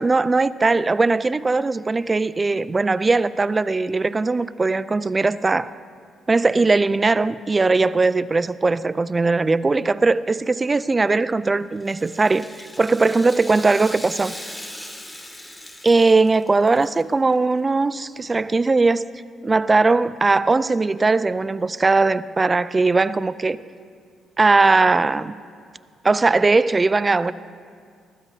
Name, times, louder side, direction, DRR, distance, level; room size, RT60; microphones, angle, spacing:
voice 1, 0.0-5.7 6.3-14.4 15.8-19.1 19.4-23.6 24.4-25.4 26.0-27.3, right 3 dB, 25° right, 0.4 m, -19 dB
Rattle (instrument), 11.8-17.0 17.3-17.4 18.3-18.4, left 1 dB, 10° left, 2.2 m, -39 dB
25.0 x 14.0 x 2.8 m
cardioid pair, 90°, 0 cm